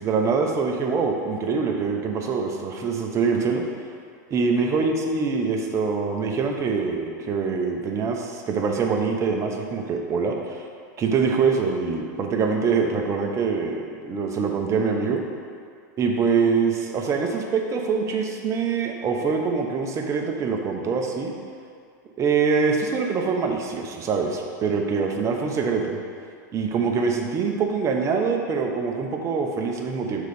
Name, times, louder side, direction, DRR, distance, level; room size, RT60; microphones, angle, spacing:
voice 1, 0.0-3.7 4.3-10.6 11.0-15.2 16.0-21.3 22.2-26.0 26.5-30.2, right 5 dB, 30° right, 2 dB, 0.9 m, -24 dB
6.5 x 4.0 x 5.0 m, 2.2 s
hypercardioid pair, 110°, 10 cm